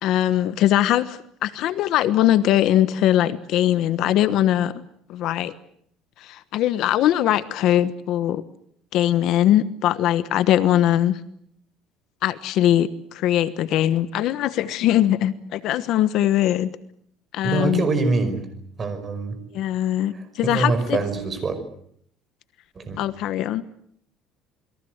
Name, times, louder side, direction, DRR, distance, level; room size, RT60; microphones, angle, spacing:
voice 1, 0.0-4.7 5.1-5.5 6.2-8.4 8.9-11.2 12.2-16.7 17.3-17.8 19.5-21.0 23.0-23.6, left 12 dB, 55° left, 13 dB, 1.2 m, -21 dB
voice 2, 17.4-18.5 18.8-19.4 20.1-21.5 22.8-23.0, right 3 dB, 25° right, 10 dB, 5.2 m, -24 dB
28.5 x 22.0 x 8.1 m, 0.67 s
cardioid pair, 165°, 0 cm